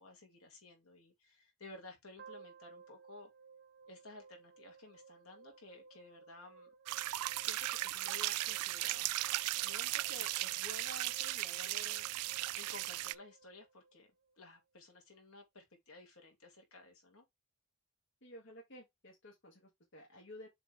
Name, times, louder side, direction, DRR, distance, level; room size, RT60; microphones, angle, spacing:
voice 1, 0.0-3.3 3.9-6.7 7.4-9.1 9.4-12.0 12.5-14.1 14.4-17.2, left 2 dB, 70° left, 2.6 m, -54 dB
sound 1, 2.2-14.4, right 5 dB, 50° right, 1.3 m, -59 dB
sound 2, 6.9-13.1, right 17 dB, 85° right, 0.3 m, -37 dB
voice 2, 18.2-20.5, left 1 dB, 55° left, 1.9 m, -54 dB
7.2 x 3.7 x 3.5 m
head